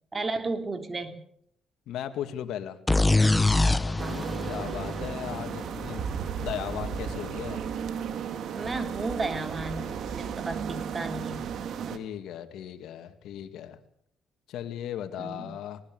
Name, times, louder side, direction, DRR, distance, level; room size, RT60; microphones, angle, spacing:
voice 1, 0.1-1.2 4.0-4.4 8.5-11.4 15.2-15.5, right 3 dB, 30° right, 8 dB, 3.3 m, -34 dB
voice 2, 1.9-2.8 3.8-6.1 6.4-7.6 11.9-13.8 14.5-15.8, left 10 dB, 85° left, 8 dB, 2.2 m, -37 dB
sound 1, 2.9-6.6, left 2 dB, 15° left, 1.1 m, -25 dB
sound 2, 4.0-12.0, right 7 dB, 70° right, 2.6 m, -34 dB
20.0 x 19.5 x 7.9 m, 0.67 s
cardioid pair, 90°, 0 cm